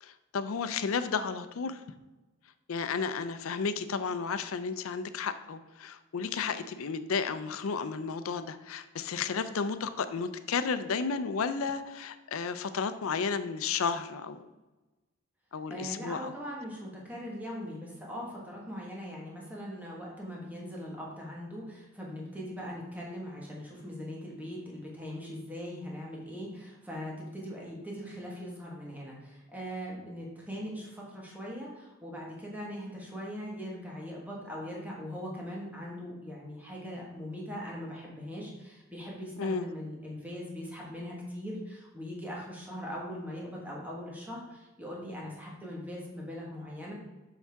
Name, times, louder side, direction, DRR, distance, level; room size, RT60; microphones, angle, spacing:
voice 1, 0.0-1.8 2.7-14.4 15.5-16.3 39.4-39.7, left 5 dB, 85° left, 11 dB, 0.5 m, -32 dB
voice 2, 15.7-46.9, equal, 10° right, -3 dB, 1.4 m, -40 dB
7.1 x 5.6 x 3.5 m, 1.1 s
head